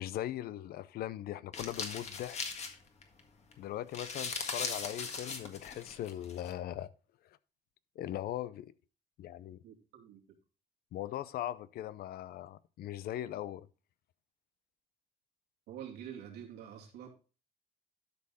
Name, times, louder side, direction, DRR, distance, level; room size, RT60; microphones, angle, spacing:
voice 1, 0.0-2.4 3.6-6.9 8.0-8.7 9.2-9.6 10.9-13.7, left 12 dB, 65° left, 0.6 m, -39 dB
sound 1, 1.5-3.2 3.5-3.6 3.8-6.5, left 4 dB, 40° left, 1.7 m, -39 dB
voice 2, 9.6-10.2 15.7-17.1, right 9 dB, 90° right, 2.5 m, -47 dB
12.0 x 5.5 x 4.1 m
cardioid pair, 110°, 17 cm